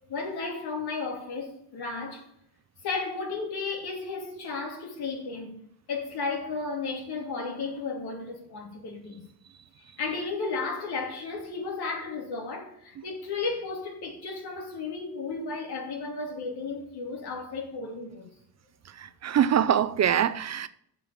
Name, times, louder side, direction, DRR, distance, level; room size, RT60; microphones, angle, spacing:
voice 1, 0.1-2.3 2.8-5.6 5.9-9.2 9.8-18.2, left 4 dB, 65° left, 2.9 m, -34 dB
voice 2, 18.9-20.7, right 9 dB, 45° right, 0.4 m, -24 dB
7.9 x 6.8 x 7.3 m
cardioid pair, 145°, 41 cm